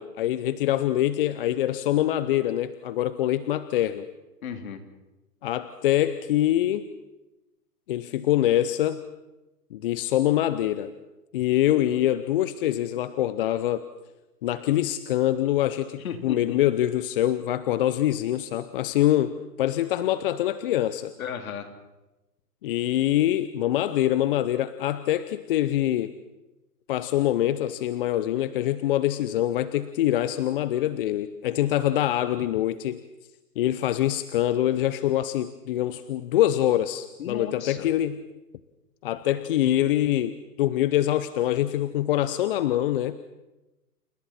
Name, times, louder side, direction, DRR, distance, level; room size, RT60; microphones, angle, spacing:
voice 1, 0.0-4.1 5.4-6.9 7.9-9.0 9.7-10.9 11.3-13.8 14.4-21.1 22.6-26.1 26.9-33.0 33.6-38.2 39.0-43.2, left 13 dB, 35° left, 13 dB, 0.8 m, -24 dB
voice 2, 4.4-4.8 16.0-16.6 21.2-21.7 37.2-37.9, left 7 dB, 60° left, 6 dB, 3.5 m, -35 dB
29.5 x 29.5 x 4.3 m, 1.0 s
hypercardioid pair, 135°, 48 cm